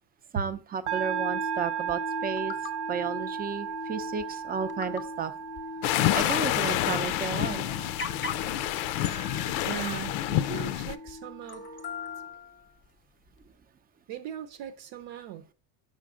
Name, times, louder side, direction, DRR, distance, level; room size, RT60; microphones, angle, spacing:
voice 1, 0.3-2.6 2.9-5.3 5.9-7.6, right 6 dB, 20° right, 0.5 m, -33 dB
sound 1, 0.9-12.3, right 5 dB, 90° right, 1.3 m, -36 dB
sound 2, 1.9-2.0 2.4-2.7 3.7-3.8 4.2-4.3 4.7-5.2 5.6-5.7 5.9-7.0 7.4-7.5 8.0-8.6 9.0-10.6 11.1-11.2 11.5-12.8 13.4-13.5, left 5 dB, 25° left, 0.7 m, -40 dB
sound 3, 5.8-10.9, left 13 dB, 85° left, 0.6 m, -28 dB
voice 2, 9.6-11.7 14.1-15.5, right 10 dB, 65° right, 0.8 m, -39 dB
6.4 x 5.2 x 3.6 m
supercardioid pair, 110°, 47 cm